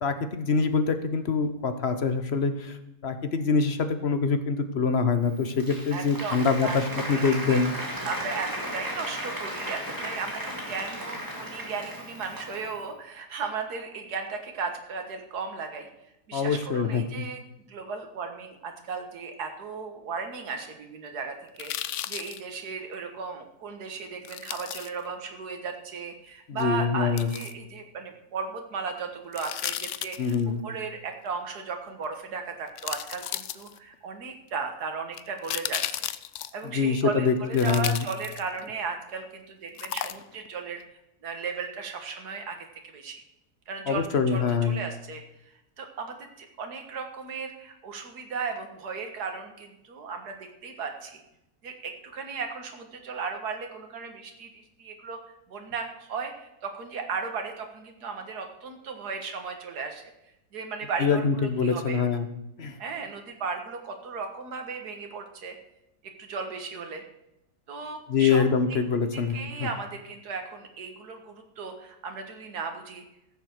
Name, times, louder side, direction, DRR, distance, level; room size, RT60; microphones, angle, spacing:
voice 1, 0.0-2.8 3.0-7.7 16.3-17.3 26.5-27.3 30.2-30.6 36.6-38.0 43.9-44.8 61.0-62.3 62.6-62.8 68.1-69.7, left 5 dB, 45° left, 9 dB, 1.1 m, -25 dB
Applause, 5.2-12.8, equal, 10° right, 2.2 m, -36 dB
voice 2, 5.9-7.2 7.5-7.6 8.1-15.9 16.3-17.4 17.7-30.4 30.6-36.1 36.5-40.8 41.2-42.7 42.9-43.2 43.7-45.2 45.8-51.2 51.6-55.2 55.5-60.0 60.5-62.0 62.8-65.6 66.0-67.0 67.7-68.4 69.1-73.1, right 5 dB, 75° right, 5 dB, 2.0 m, -36 dB
sound 1, 21.6-22.4 24.2-24.9 27.2-27.5 29.3-30.4 32.0-32.1 32.8-33.9 35.1-36.6 37.5-38.7 39.8-40.5 40.8-40.9, left 12 dB, 65° left, 0.7 m, -34 dB
14.5 x 7.0 x 6.6 m, 0.88 s
omnidirectional pair, 1.7 m